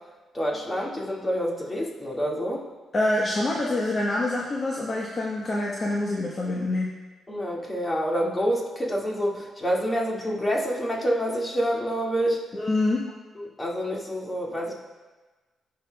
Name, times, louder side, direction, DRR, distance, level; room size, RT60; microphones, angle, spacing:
voice 1, 0.3-2.6 7.3-12.4 13.4-14.7, equal, 20° left, -2 dB, 1.9 m, -27 dB
voice 2, 2.9-6.9 12.5-13.0, left 2 dB, 40° left, -3 dB, 1.0 m, -26 dB
15.5 x 5.8 x 2.3 m, 1.3 s
cardioid pair, 85°, 0 cm